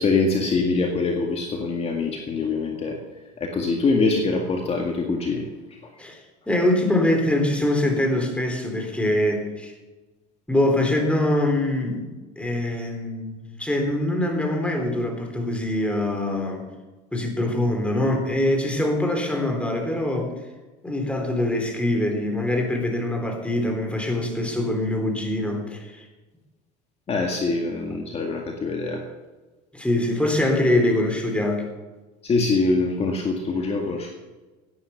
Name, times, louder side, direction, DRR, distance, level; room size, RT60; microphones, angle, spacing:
voice 1, 0.0-3.0 3.4-5.4 27.1-29.0 32.2-34.1, left 3 dB, 30° left, 1 dB, 2.1 m, -24 dB
voice 2, 6.5-9.7 10.5-16.7 17.1-20.3 20.8-26.0 27.9-28.0 29.7-31.6, left 1 dB, 5° left, 3 dB, 3.5 m, -24 dB
16.5 x 10.0 x 5.9 m, 1.2 s
supercardioid pair, 115°, 20 cm